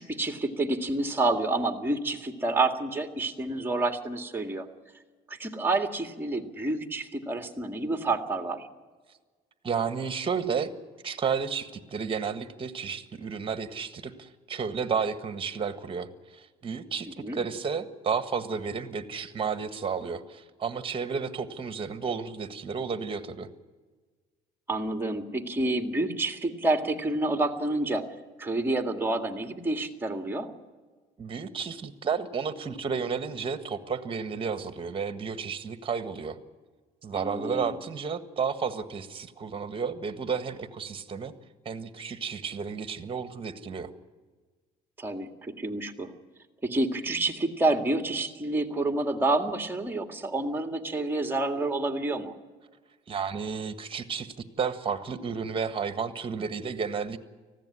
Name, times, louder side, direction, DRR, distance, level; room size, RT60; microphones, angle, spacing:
voice 1, 0.0-4.6 5.3-8.7 17.1-17.4 24.7-28.0 28.4-30.5 37.1-37.8 45.0-46.1 46.6-52.3, right 2 dB, 10° right, 5 dB, 2.0 m, -28 dB
voice 2, 9.6-10.7 11.0-23.5 31.2-36.4 37.0-41.3 41.6-43.9 53.1-57.2, right 6 dB, 30° right, 10 dB, 1.6 m, -32 dB
19.5 x 15.5 x 9.8 m, 1.4 s
cardioid pair, 110°, 17 cm